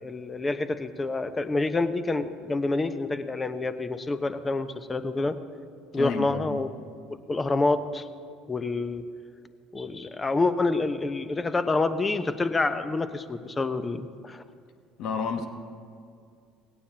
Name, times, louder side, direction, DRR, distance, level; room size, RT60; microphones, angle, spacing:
voice 1, 0.0-5.3 5.9-6.7 7.3-8.1 8.5-9.0 9.7-14.4, left 3 dB, 25° left, 11 dB, 0.9 m, -27 dB
voice 2, 5.9-6.6 15.0-15.5, left 5 dB, 60° left, 7 dB, 1.3 m, -30 dB
19.0 x 17.0 x 2.9 m, 2.2 s
hypercardioid pair, 65°, 0 cm